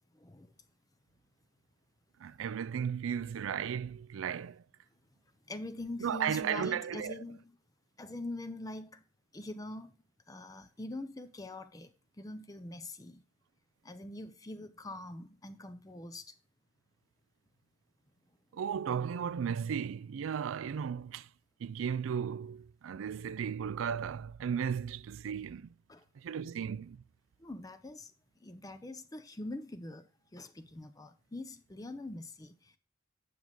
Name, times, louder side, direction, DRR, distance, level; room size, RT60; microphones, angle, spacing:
voice 1, 0.1-0.5 5.5-7.6 8.0-9.0 9.3-9.9 10.3-11.9 12.2-13.2 13.8-16.3 25.9-26.0 26.4-26.5 27.4-28.1 28.4-30.1 30.3-32.8, left 2 dB, 20° left, 0.5 m, -43 dB
voice 2, 2.2-4.6 6.0-7.2 18.5-21.3 21.6-25.7 26.2-27.0, right 7 dB, 80° right, 0.4 m, -35 dB
9.2 x 6.1 x 3.8 m
head